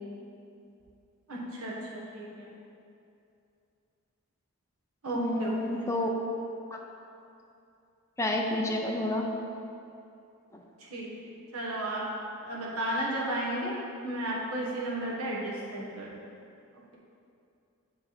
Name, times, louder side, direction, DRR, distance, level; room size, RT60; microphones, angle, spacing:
voice 1, 1.3-2.5 5.0-5.8 10.8-11.1 11.5-12.0 12.4-13.8 14.0-16.1, right 1 dB, 70° right, -5 dB, 1.4 m, -33 dB
voice 2, 5.1-6.1 6.7-6.8 8.2-9.3 10.5-10.6, left 1 dB, 15° left, 0 dB, 0.4 m, -29 dB
7.6 x 3.3 x 5.8 m, 2.6 s
head